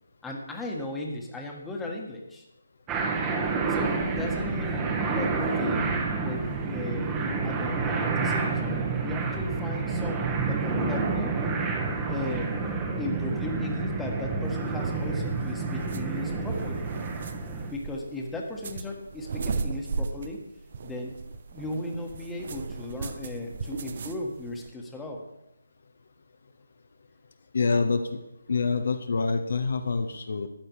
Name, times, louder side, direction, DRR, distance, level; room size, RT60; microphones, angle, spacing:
voice 1, 0.2-2.4 3.7-5.9 6.2-7.2 7.4-11.4 12.1-12.5 13.0-16.9 17.7-20.4 20.8-21.2 21.5-25.3, left 2 dB, 5° left, 0 dB, 1.5 m, -36 dB
sound 1, 2.9-17.7, right 4 dB, 15° right, 1.2 m, -29 dB
sound 2, 14.5-24.7, right 4 dB, 40° right, 0.8 m, -36 dB
voice 2, 27.5-28.0 28.5-30.5, left 4 dB, 55° left, 7 dB, 1.0 m, -26 dB
13.0 x 9.8 x 4.8 m, 0.90 s
figure-of-eight pair, 150°, 0 cm